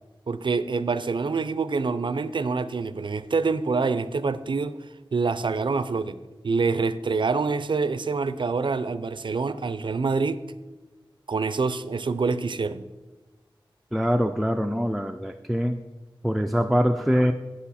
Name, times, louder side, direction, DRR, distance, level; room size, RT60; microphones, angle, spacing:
voice 1, 0.3-4.7 5.1-6.2 6.4-10.4 11.3-12.8, right 4 dB, 60° right, 13 dB, 0.4 m, -26 dB
voice 2, 13.9-15.8 16.2-17.3, equal, ahead, 6 dB, 0.4 m, -23 dB
8.3 x 7.8 x 4.2 m, 1.2 s
wide cardioid pair, 75°, 9 cm